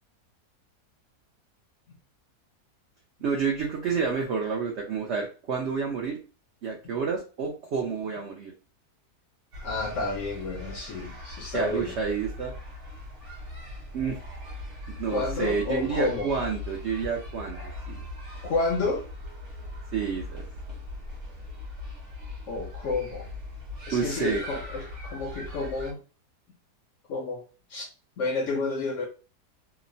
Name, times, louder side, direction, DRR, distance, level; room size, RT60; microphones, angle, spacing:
voice 1, 3.2-6.2 6.6-8.5 11.5-12.5 13.9-14.2 14.9-18.0 19.9-20.4 23.9-24.4, right 5 dB, 75° right, 0.6 m, -29 dB
sound 1, 9.5-25.9, left 2 dB, 50° right, 1.1 m, -40 dB
voice 2, 9.6-12.0 15.1-16.3 18.4-19.1 22.5-23.3 23.9-26.0 27.1-27.4 27.7-27.8 28.2-29.1, left 3 dB, 70° left, 0.7 m, -30 dB
2.9 x 2.0 x 2.6 m
omnidirectional pair, 1.7 m